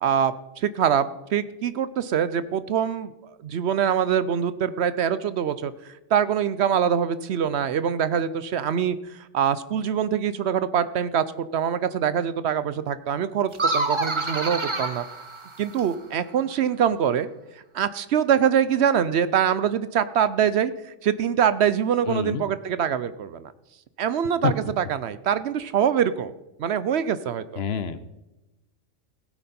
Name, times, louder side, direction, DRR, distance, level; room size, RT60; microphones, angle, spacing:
voice 1, 0.0-3.1 3.4-11.2 11.5-15.0 15.6-17.3 17.7-20.7 21.0-23.5 24.0-26.3 26.6-27.6, right 8 dB, 65° right, 14 dB, 0.8 m, -24 dB
sound 1, 13.5-16.0, right 2 dB, 25° right, 1.0 m, -27 dB
voice 2, 22.1-22.4 24.4-24.5 27.6-28.0, left 7 dB, 60° left, 14 dB, 0.9 m, -26 dB
16.5 x 9.0 x 4.3 m, 0.99 s
omnidirectional pair, 1.3 m